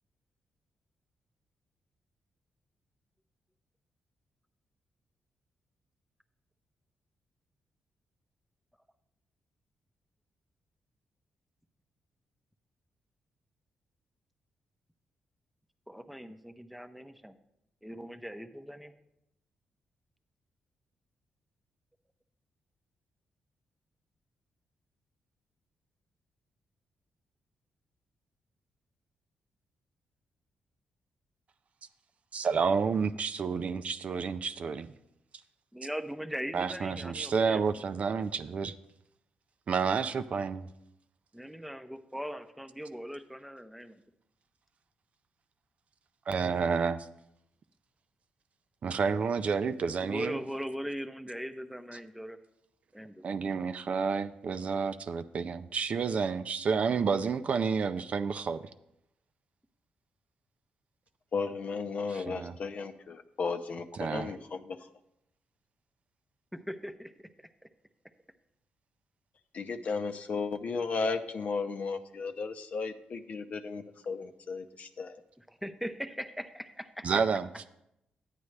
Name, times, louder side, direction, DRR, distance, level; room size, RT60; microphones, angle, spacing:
voice 1, 15.9-17.4 17.8-18.9 35.7-37.6 41.3-44.0 50.0-52.4 52.9-53.4 66.5-67.5 75.4-77.1, equal, ahead, 9 dB, 0.6 m, -40 dB
voice 2, 32.3-34.9 36.5-38.7 39.7-40.7 46.3-47.1 48.8-50.4 53.2-58.6 62.3-62.5 64.0-64.3 77.0-77.5, right 5 dB, 55° right, 11 dB, 0.4 m, -30 dB
voice 3, 61.3-64.9 69.5-75.2, left 4 dB, 55° left, 7 dB, 0.6 m, -35 dB
9.7 x 9.3 x 3.3 m, 0.83 s
cardioid pair, 80°, 3 cm